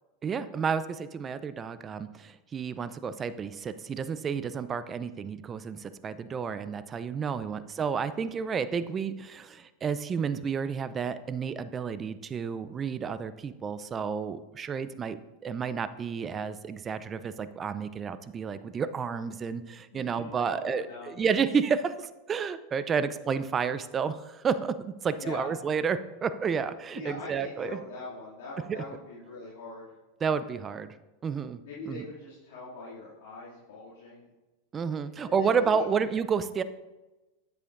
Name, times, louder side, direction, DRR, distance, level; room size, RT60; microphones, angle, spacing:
voice 1, 0.2-15.2 15.4-27.8 28.7-28.8 30.2-30.9 31.2-31.6 31.9-32.0 34.7-36.6, right 6 dB, 25° right, 13 dB, 0.5 m, -31 dB
voice 2, 7.2-7.6 19.9-21.1 25.2-25.5 26.9-29.9 31.6-34.3 35.2-35.8, left 3 dB, 70° left, -9 dB, 2.4 m, -42 dB
9.6 x 8.1 x 2.6 m, 1.1 s
hypercardioid pair, 100°, 0 cm